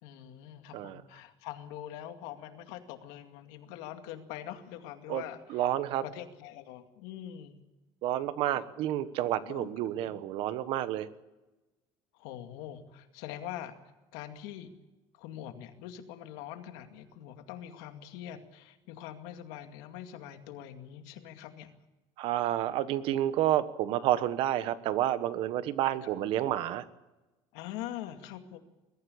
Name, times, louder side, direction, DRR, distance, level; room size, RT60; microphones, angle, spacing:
voice 1, 0.0-5.7 6.0-7.6 8.5-8.6 9.5-9.7 10.0-10.2 12.1-13.8 14.1-14.7 15.1-21.7 27.5-28.6, left 11 dB, 85° left, 7 dB, 2.3 m, -43 dB
voice 2, 5.5-6.0 8.0-11.1 22.2-26.8, right 12 dB, 55° right, 14 dB, 1.2 m, -30 dB
22.0 x 14.5 x 8.6 m, 1.1 s
cardioid pair, 165°, 11 cm